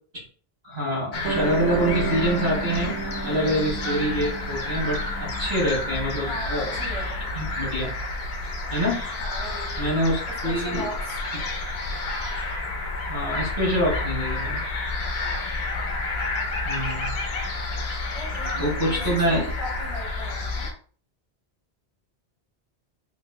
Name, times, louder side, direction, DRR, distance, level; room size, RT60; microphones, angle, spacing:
voice 1, 0.6-6.7 7.3-7.9 8.7-9.0 9.8-10.9 13.1-14.6 16.6-17.1 18.6-19.5, equal, 45° right, -5 dB, 1.7 m, -26 dB
sound 1, 1.1-20.7, left 2 dB, 75° left, 0.9 m, -30 dB
Piano, 1.2-7.8, right 4 dB, 85° right, 0.9 m, -34 dB
voice 2, 3.2-3.6 6.2-7.3 9.2-11.2 15.0-15.5 18.1-20.7, equal, ahead, -6 dB, 1.6 m, -39 dB
3.7 x 3.0 x 2.2 m, 0.43 s
omnidirectional pair, 1.1 m